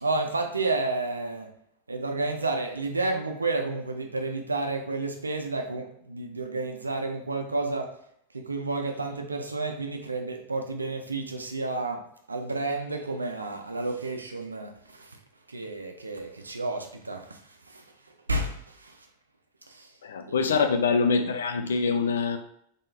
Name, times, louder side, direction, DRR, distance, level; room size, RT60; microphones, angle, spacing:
voice 1, 0.0-1.5 1.9-7.9 8.3-12.0 12.3-15.1 15.5-17.4 17.7-17.8 18.3-18.9 19.7-19.9 20.3-20.5, right 3 dB, 80° right, 0.5 m, -31 dB
voice 2, 20.0-22.4, left 5 dB, 65° left, 0.4 m, -24 dB
3.7 x 3.6 x 2.6 m
figure-of-eight pair, 90°, 0 cm